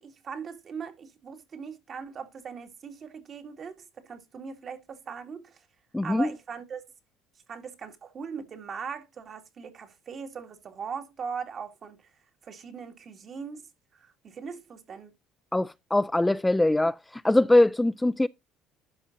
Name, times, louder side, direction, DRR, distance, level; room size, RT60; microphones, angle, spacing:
voice 1, 0.0-5.7 6.0-6.8 7.5-12.1 12.4-13.6 13.9-15.1, right 6 dB, 45° right, 2.2 m, -40 dB
voice 2, 5.9-6.3 15.5-18.3, left 1 dB, 10° left, 0.4 m, -22 dB
12.0 x 5.4 x 2.7 m
hypercardioid pair, 70°, 0 cm